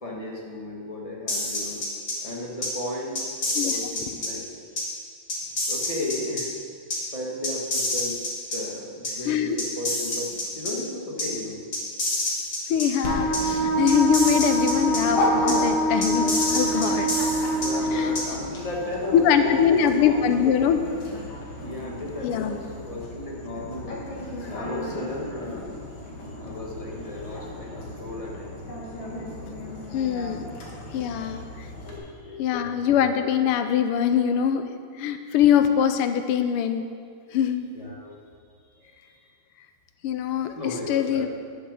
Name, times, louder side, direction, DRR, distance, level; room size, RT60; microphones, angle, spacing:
voice 1, 0.0-1.8 2.2-3.1 3.6-4.4 5.7-6.5 7.1-8.2 8.5-11.6 13.4-13.5 17.6-20.5 21.6-28.8 29.4-29.5 31.1-31.4 31.8-32.7 37.7-38.2 38.7-39.1 40.5-41.3, left 2 dB, 20° left, -2 dB, 1.4 m, -35 dB
sound 1, 1.3-2.1 2.6-2.7 3.2-4.3 4.8-4.9 5.3-6.4 6.9-7.0 7.4-8.6 9.0-9.1 9.6-10.7 11.2-11.3 11.7-12.9 13.3-13.4 13.9-15.0 15.5-15.6 16.0-17.7 18.2-18.3, left 2 dB, 40° left, 2.7 m, -27 dB
voice 2, 9.3-9.6 12.7-17.1 17.9-18.1 19.1-20.8 22.2-22.6 29.9-30.5 30.9-31.7 32.4-34.7 35.0-36.8 37.3-37.7 40.0-41.3, left 8 dB, 90° left, 8 dB, 1.6 m, -23 dB
Dog, 13.0-32.0, left 1 dB, 70° left, 2.5 m, -34 dB
Wind instrument woodwind instrument, 13.0-18.2, right 1 dB, ahead, 0.9 m, -25 dB
11.0 x 7.4 x 6.4 m, 2.1 s
omnidirectional pair, 2.4 m